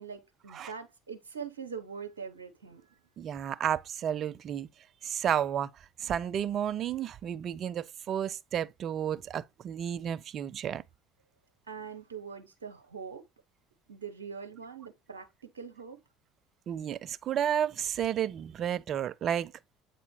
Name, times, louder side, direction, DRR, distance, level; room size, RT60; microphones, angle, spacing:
voice 1, 0.0-2.9 11.7-13.3 13.9-16.0, right 6 dB, 85° right, 0.9 m, -43 dB
voice 2, 3.2-4.7 5.0-5.7 6.0-10.8 16.7-19.5, right 9 dB, 45° right, 0.5 m, -32 dB
8.3 x 4.2 x 3.0 m
hypercardioid pair, 65°, 0 cm